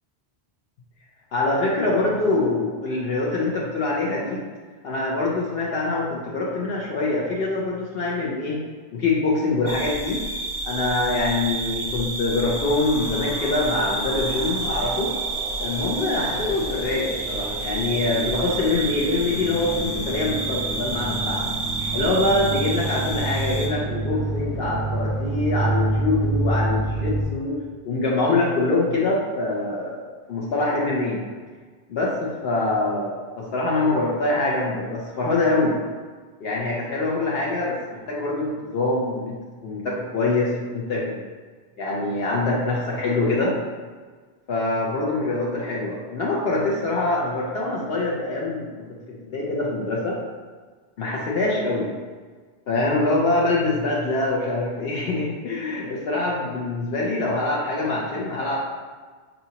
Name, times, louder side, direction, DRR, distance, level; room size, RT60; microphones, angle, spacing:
voice 1, 1.3-4.4 4.8-8.6 8.9-10.2 10.6-15.1 15.6-21.4 21.9-27.6 27.8-30.0 30.3-31.2 31.9-35.8 36.4-39.4 39.6-41.2 41.8-43.5 44.5-48.8 49.2-50.1 51.0-51.9 52.7-58.6, left 2 dB, 70° left, -4 dB, 0.9 m, -24 dB
sound 1, 9.7-23.7, right 3 dB, 35° right, 0.6 m, -30 dB
sound 2, 12.6-27.2, right 2 dB, 50° left, 1.4 m, -29 dB
5.5 x 2.6 x 2.8 m, 1.5 s
omnidirectional pair, 1.0 m